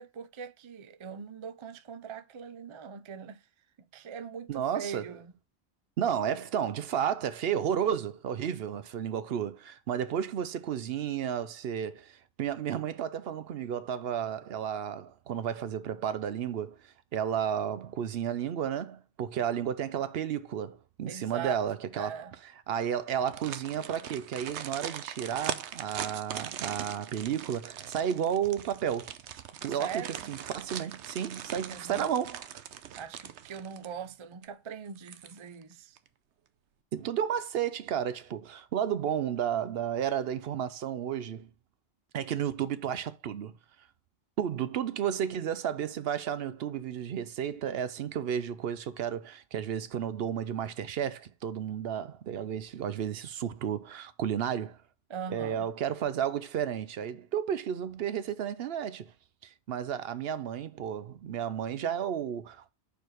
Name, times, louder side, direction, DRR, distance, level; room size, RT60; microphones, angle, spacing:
voice 1, 0.0-3.4 3.9-5.3 21.1-21.6 21.9-22.3 29.7-30.3 31.7-32.1 33.0-36.0 55.1-55.7, right 7 dB, 40° right, 0.4 m, -41 dB
voice 2, 4.5-5.1 6.0-16.8 17.1-22.3 22.7-29.1 29.6-30.0 30.3-32.6 36.9-41.5 42.1-43.5 44.4-54.8 55.3-59.1 59.4-62.7, right 9 dB, 65° right, 0.8 m, -32 dB
sound 1, 23.1-34.1 34.4-34.5 35.0-35.6 36.0-36.1, right 9 dB, 90° right, 1.0 m, -41 dB
5.1 x 4.6 x 6.1 m
omnidirectional pair, 1.1 m